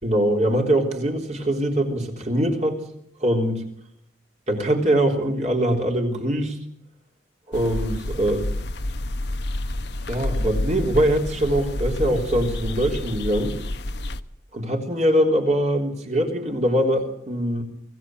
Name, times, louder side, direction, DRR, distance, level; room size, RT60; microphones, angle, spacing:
voice 1, 0.0-2.8 3.2-3.6 4.5-6.6 7.5-8.5 10.1-13.6 14.5-17.6, right 1 dB, 35° right, 2 dB, 3.6 m, -22 dB
sound 1, 7.5-14.2, left 1 dB, 65° left, 1.1 m, -29 dB
24.0 x 16.0 x 9.2 m, 0.73 s
head